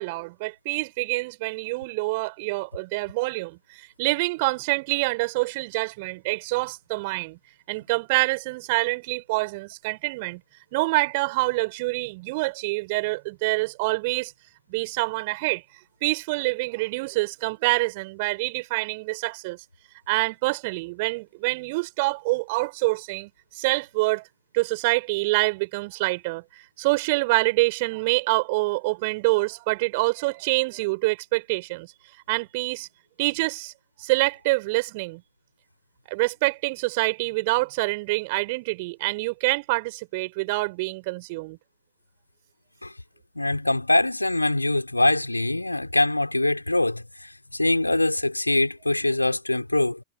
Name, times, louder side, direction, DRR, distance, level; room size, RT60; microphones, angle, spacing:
voice 1, 0.0-7.4 7.7-10.4 10.7-14.3 14.7-15.6 16.0-19.6 20.1-23.3 23.5-24.2 24.5-26.4 26.8-31.9 32.3-32.9 33.2-33.7 34.0-35.2 36.1-41.6, right 24 dB, 50° right, 4.1 m, -26 dB
voice 2, 43.3-50.0, left 2 dB, 85° left, 4.7 m, -23 dB
figure-of-eight pair, 90°, 0 cm